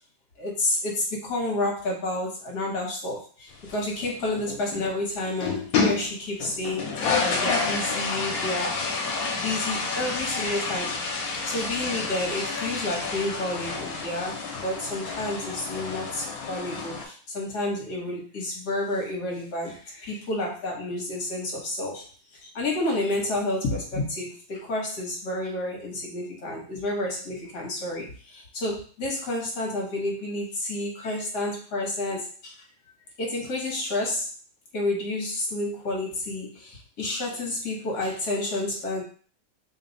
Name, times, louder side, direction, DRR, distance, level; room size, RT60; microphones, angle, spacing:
voice 1, 0.4-8.8 9.3-11.0 11.4-32.5 33.2-34.3 34.7-39.0, left 2 dB, 55° left, -2 dB, 1.5 m, -30 dB
sound 1, 3.5-4.9 5.3-6.1 6.4-17.0, left 4 dB, 70° left, 1.4 m, -29 dB
3.7 x 2.3 x 3.9 m, 0.42 s
omnidirectional pair, 2.4 m